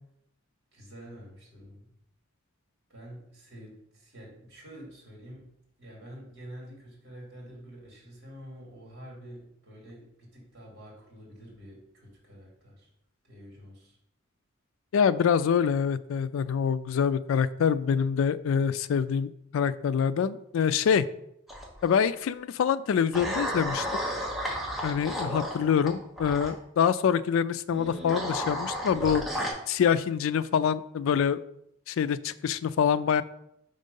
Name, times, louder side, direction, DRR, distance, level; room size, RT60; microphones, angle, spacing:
voice 1, 0.7-1.9 2.9-5.5 5.8-12.9 13.2-14.0, equal, 55° right, -2 dB, 2.4 m, -47 dB
voice 2, 14.9-21.1 21.8-23.9 24.8-31.4 31.9-33.2, left 7 dB, 80° left, 15 dB, 0.3 m, -25 dB
sound 1, 21.5-22.0 23.1-26.5 27.7-29.5, equal, ahead, 0.9 m, -33 dB
5.3 x 3.7 x 5.3 m, 0.77 s
head